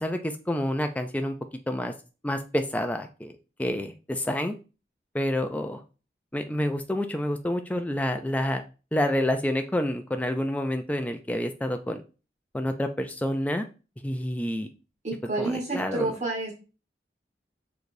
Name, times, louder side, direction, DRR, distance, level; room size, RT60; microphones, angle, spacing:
voice 1, 0.0-1.4 1.7-1.9 2.2-3.3 3.6-4.5 5.1-5.8 6.3-8.6 8.9-12.0 12.5-13.7 14.0-14.7 15.4-16.1, left 1 dB, 10° left, 6 dB, 0.4 m, -28 dB
voice 2, 15.0-16.5, right 2 dB, 40° right, -2 dB, 1.4 m, -29 dB
4.9 x 3.9 x 2.6 m, 0.33 s
head